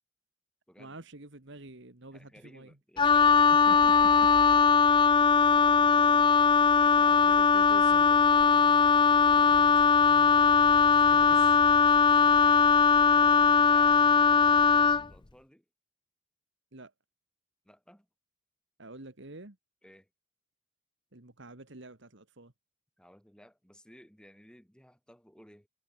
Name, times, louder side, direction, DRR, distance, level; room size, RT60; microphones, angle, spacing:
voice 1, 0.8-2.8 3.3-4.3 5.3-6.4 7.1-8.8 9.3-9.7 10.9-11.5 16.7-16.9 18.8-19.6 21.1-22.5, right 2 dB, 55° right, 1.9 m, -48 dB
voice 2, 2.1-4.4 5.6-6.2 6.7-7.3 11.2-11.3 12.3-12.7 13.0-15.7 17.6-18.1 19.8-20.1 23.0-25.7, equal, 5° left, 7.3 m, -57 dB
Wind instrument woodwind instrument, 3.0-15.1, left 5 dB, 20° left, 0.4 m, -21 dB
head